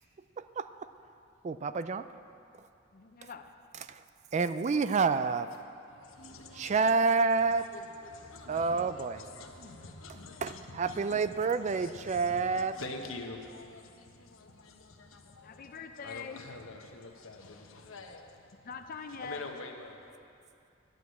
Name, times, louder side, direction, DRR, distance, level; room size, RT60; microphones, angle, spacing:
voice 1, 0.4-0.9 1.4-2.1 3.9-4.0 4.3-5.5 6.6-7.7 8.5-9.2 10.4-12.7, right 4 dB, 35° right, 0.3 m, -28 dB
voice 2, 2.9-3.5 15.4-16.4 18.6-19.4, left 5 dB, 45° left, 0.5 m, -43 dB
voice 3, 5.9-18.7 19.1-20.3, left 3 dB, 80° left, 1.2 m, -47 dB
11.0 x 7.9 x 8.3 m
head